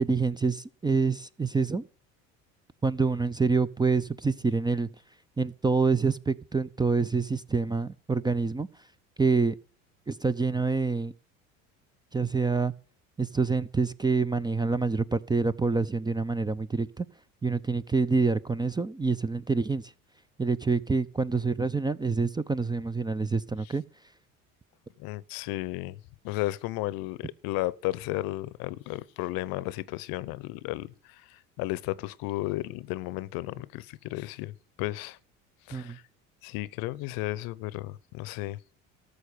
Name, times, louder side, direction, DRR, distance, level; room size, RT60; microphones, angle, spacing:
voice 1, 0.0-1.8 2.8-4.9 5.4-8.7 9.2-9.5 10.1-11.1 12.1-12.7 13.2-17.1 17.4-19.9 20.4-23.8 35.7-36.0, right 4 dB, 10° right, 0.5 m, -26 dB
voice 2, 25.0-26.0 26.2-35.2 35.7-36.0 36.4-38.6, left 18 dB, 60° left, 0.8 m, -34 dB
14.0 x 6.5 x 6.7 m
hypercardioid pair, 75°, 39 cm